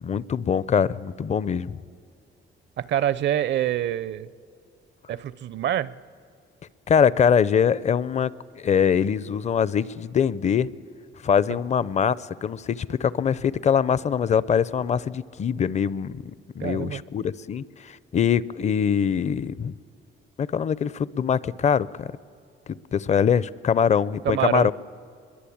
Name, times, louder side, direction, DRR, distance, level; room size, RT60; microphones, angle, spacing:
voice 1, 0.0-1.8 6.9-10.7 11.2-19.7 20.4-22.1 22.7-24.7, left 7 dB, 35° left, 19 dB, 0.6 m, -23 dB
voice 2, 2.8-4.3 5.1-5.9 16.6-17.0 24.2-24.7, right 11 dB, 60° right, 19 dB, 0.6 m, -26 dB
25.0 x 22.0 x 8.6 m, 2.3 s
cardioid pair, 130°, 21 cm